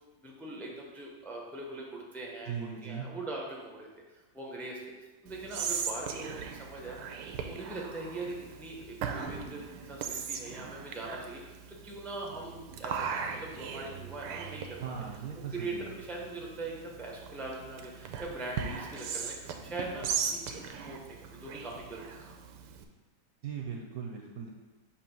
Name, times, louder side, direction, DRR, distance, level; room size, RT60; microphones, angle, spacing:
voice 1, 0.2-2.5 2.8-4.8 5.2-14.9 15.5-22.0, right 2 dB, ahead, -2 dB, 0.5 m, -41 dB
voice 2, 2.5-3.1 14.8-15.9 23.4-24.5, right 7 dB, 70° right, 0 dB, 1.0 m, -39 dB
Whispering, 5.3-22.8, right 6 dB, 85° right, 1.2 m, -39 dB
6.9 x 3.0 x 5.4 m, 1.2 s
omnidirectional pair, 1.8 m